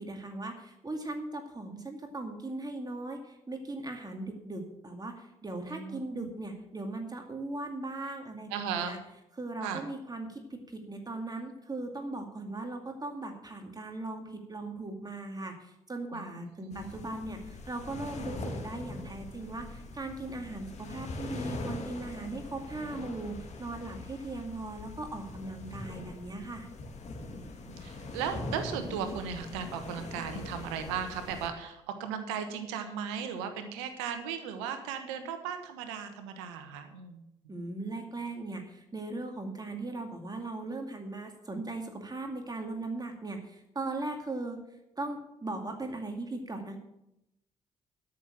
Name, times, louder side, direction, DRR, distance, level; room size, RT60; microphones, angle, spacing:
voice 1, 0.0-9.0 9.4-26.7 37.5-44.6 45.0-46.8, right 2 dB, 25° right, 4 dB, 2.2 m, -38 dB
voice 2, 5.7-6.3 8.5-8.9 9.6-9.8 16.1-16.9 27.7-37.2, right 7 dB, 85° right, 7 dB, 1.3 m, -36 dB
sound 1, 16.7-31.5, left 2 dB, 50° left, 2.2 m, -42 dB
12.5 x 6.6 x 7.4 m, 0.85 s
hypercardioid pair, 45°, 15 cm